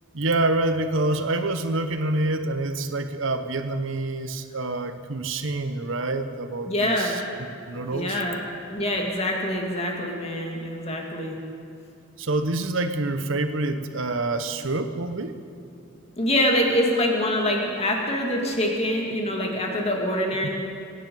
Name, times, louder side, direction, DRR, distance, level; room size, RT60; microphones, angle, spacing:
voice 1, 0.1-7.2 7.7-8.2 12.2-15.3 20.4-20.5, right 2 dB, 65° right, 9 dB, 1.0 m, -27 dB
voice 2, 6.7-7.2 7.9-8.4 8.7-11.3 16.2-20.5, left 1 dB, 30° left, 0 dB, 2.2 m, -25 dB
24.0 x 10.0 x 5.4 m, 2.5 s
head